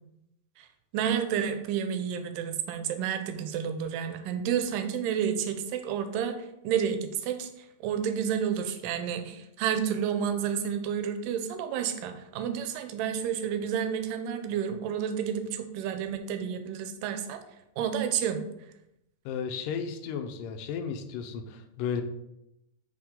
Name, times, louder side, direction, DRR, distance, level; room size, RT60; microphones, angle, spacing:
voice 1, 0.9-7.5 7.8-17.4 17.8-18.4, right 8 dB, 90° right, 8 dB, 2.3 m, -30 dB
voice 2, 19.3-22.0, left 6 dB, 90° left, 7 dB, 2.2 m, -34 dB
6.1 x 5.1 x 3.7 m, 0.84 s
omnidirectional pair, 3.8 m